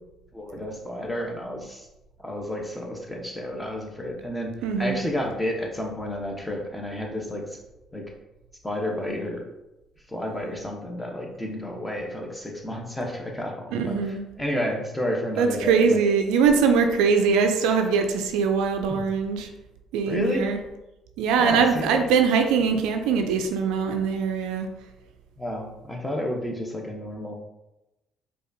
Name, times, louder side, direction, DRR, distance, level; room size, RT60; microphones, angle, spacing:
voice 1, 0.3-1.9 2.2-7.6 7.9-8.0 8.6-9.4 10.1-16.0 18.9-19.0 20.1-20.5 21.4-22.0 25.4-27.4, left 1 dB, 10° left, 0 dB, 0.9 m, -31 dB
voice 2, 4.6-5.0 13.7-14.2 15.4-19.5 19.9-20.6 21.2-24.7, right 5 dB, 75° right, 5 dB, 0.3 m, -22 dB
4.9 x 2.3 x 2.6 m, 0.97 s
hypercardioid pair, 55°, 0 cm